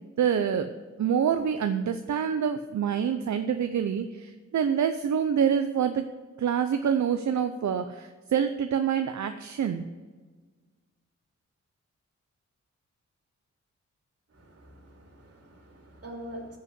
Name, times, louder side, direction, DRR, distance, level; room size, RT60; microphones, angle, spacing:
voice 1, 0.2-0.7 1.0-6.0 6.4-9.9, right 8 dB, 75° right, 8 dB, 0.6 m, -26 dB
voice 2, 14.3-16.6, equal, 55° right, 1 dB, 2.7 m, -44 dB
11.0 x 5.6 x 7.9 m, 1.4 s
wide cardioid pair, 95°, 29 cm